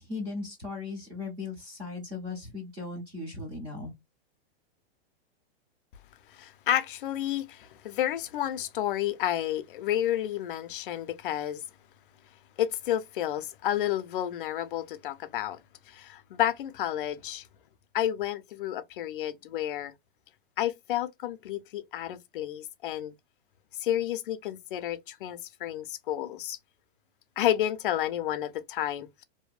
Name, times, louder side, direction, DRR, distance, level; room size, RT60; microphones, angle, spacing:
voice 1, 0.0-3.9, left 3 dB, 15° right, 0.4 m, -37 dB
voice 2, 6.3-11.6 12.6-15.6 15.9-17.4 17.9-19.9 20.6-23.1 23.8-26.6 27.4-29.2, left 12 dB, 55° left, 0.5 m, -31 dB
2.6 x 2.1 x 2.3 m
supercardioid pair, 170°, 32 cm